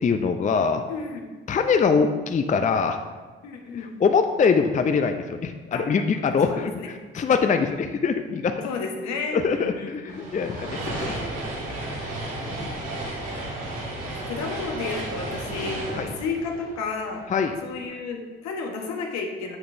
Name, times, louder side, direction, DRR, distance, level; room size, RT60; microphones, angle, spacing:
voice 1, 0.0-0.8 1.5-3.0 3.8-8.7 9.3-11.1 12.0-12.7 16.0-16.1 17.3-17.6, left 5 dB, 25° left, 7 dB, 0.5 m, -23 dB
voice 2, 0.9-1.2 3.4-3.9 5.7-5.8 6.5-6.9 8.6-10.3 11.0-11.2 12.4-12.8 14.0-17.2 17.6-19.6, left 4 dB, 65° left, 2 dB, 1.2 m, -32 dB
sound 1, 10.1-17.5, right 1 dB, 80° right, 1.9 m, -33 dB
7.6 x 7.0 x 2.7 m, 1.4 s
hypercardioid pair, 45°, 29 cm